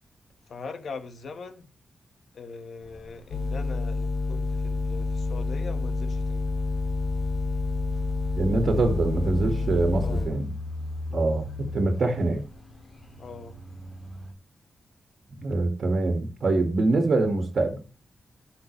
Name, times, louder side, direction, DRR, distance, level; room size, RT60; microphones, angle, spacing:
voice 1, 0.5-1.7 2.3-6.5 10.0-10.3 11.1-11.4 13.2-13.6, left 4 dB, 60° left, 1.4 m, -41 dB
sound 1, 2.8-14.3, left 2 dB, 25° left, 2.5 m, -39 dB
sound 2, 3.3-10.3, left 3 dB, 75° left, 3.9 m, -28 dB
voice 2, 8.4-10.5 11.1-12.4 15.4-17.8, right 2 dB, 50° right, 1.9 m, -24 dB
16.0 x 5.9 x 3.2 m
wide cardioid pair, 165°, 0 cm